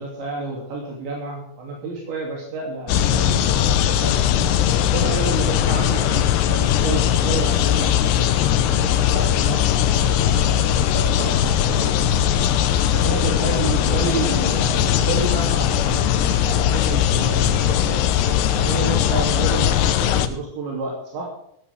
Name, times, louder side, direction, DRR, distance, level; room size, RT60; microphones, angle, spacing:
voice 1, 0.0-4.2 4.8-9.7 10.0-11.9 12.9-18.0 18.5-19.7 20.0-21.3, right 4 dB, 70° right, -2 dB, 5.1 m, -30 dB
sound 1, 2.9-20.3, left 10 dB, 75° left, 2.9 m, -19 dB
16.5 x 15.0 x 3.6 m, 0.73 s
omnidirectional pair, 5.5 m